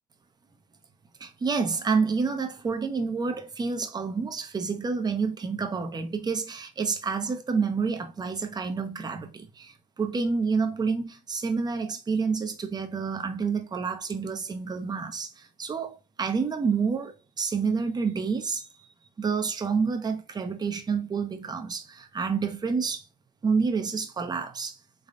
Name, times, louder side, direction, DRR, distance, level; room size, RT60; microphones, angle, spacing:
voice 1, 1.2-18.6 19.2-23.0 23.4-24.8, right 5 dB, 25° right, 0.6 m, -28 dB
3.4 x 3.2 x 2.5 m
cardioid pair, 110°, 17 cm